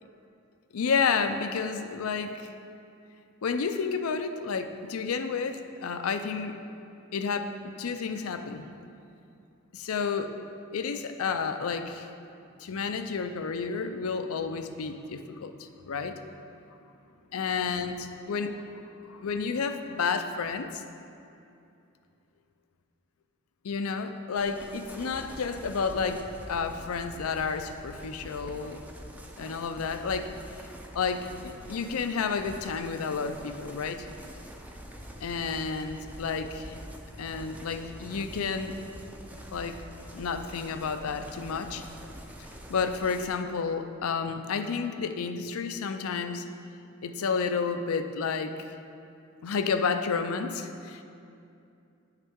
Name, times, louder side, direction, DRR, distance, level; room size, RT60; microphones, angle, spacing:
voice 1, 0.7-2.5 3.4-6.6 7.1-8.7 9.7-10.4 10.7-12.1 12.6-16.2 17.3-20.8 23.6-26.2 26.5-28.8 29.4-30.3 30.9-34.1 35.2-36.7 37.2-38.8 39.5-39.8 40.1-41.8 42.7-46.5 47.0-48.7 49.4-51.0, left 5 dB, 90° left, 8 dB, 0.5 m, -31 dB
sound 1, 24.4-43.3, equal, 5° right, 0.4 m, -45 dB
10.0 x 5.7 x 3.6 m, 2.6 s
head